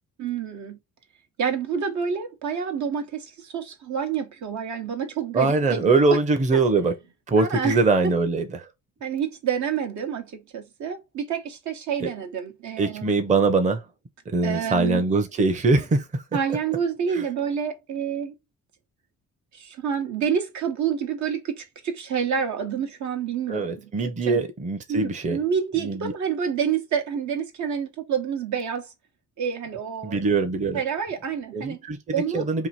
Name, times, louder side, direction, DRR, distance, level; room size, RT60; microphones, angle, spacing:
voice 1, 0.2-0.8 1.4-5.9 6.5-6.6 7.4-7.8 8.0-8.2 9.0-13.2 14.4-15.0 16.3-18.3 19.5-23.9 24.2-24.4 24.9-28.9 29.4-30.2 30.7-31.8 32.1-32.5, right 7 dB, 70° right, 1.0 m, -28 dB
voice 2, 5.3-6.9 7.3-8.5 12.0-12.1 12.8-13.8 14.3-16.0 17.1-17.2 23.5-25.4 25.8-26.1 30.0-30.8 31.5-32.0 32.3-32.7, right 3 dB, 25° right, 0.7 m, -22 dB
2.9 x 2.6 x 4.1 m
cardioid pair, 90°, 30 cm